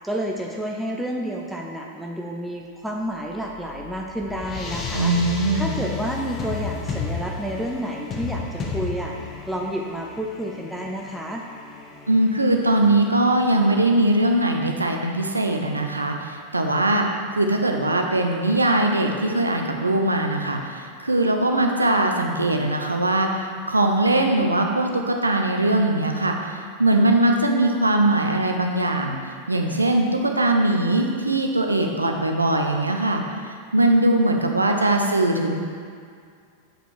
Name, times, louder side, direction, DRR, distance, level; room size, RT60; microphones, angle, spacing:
voice 1, 0.0-11.4, right 1 dB, 5° right, -1 dB, 0.6 m, -30 dB
sound 1, 3.3-14.1, left 5 dB, 30° left, 1.0 m, -34 dB
voice 2, 4.9-5.7 12.1-17.1 17.3-29.2 29.5-35.6, right 1 dB, 80° right, 3 dB, 0.7 m, -21 dB
7.6 x 5.0 x 4.8 m, 2.2 s
figure-of-eight pair, 90°, 0 cm